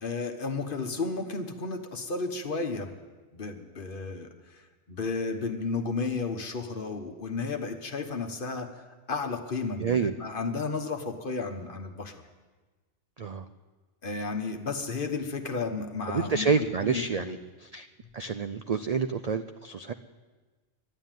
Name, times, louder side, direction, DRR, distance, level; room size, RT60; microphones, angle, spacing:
voice 1, 0.0-2.9 3.3-4.6 4.9-12.1 14.0-17.4, left 4 dB, 50° left, 6 dB, 1.3 m, -33 dB
voice 2, 9.8-10.1 13.2-13.4 16.1-17.4 17.7-17.9 18.1-19.9, right 5 dB, 55° right, 9 dB, 0.4 m, -28 dB
11.5 x 11.5 x 9.1 m, 1.3 s
omnidirectional pair, 1.2 m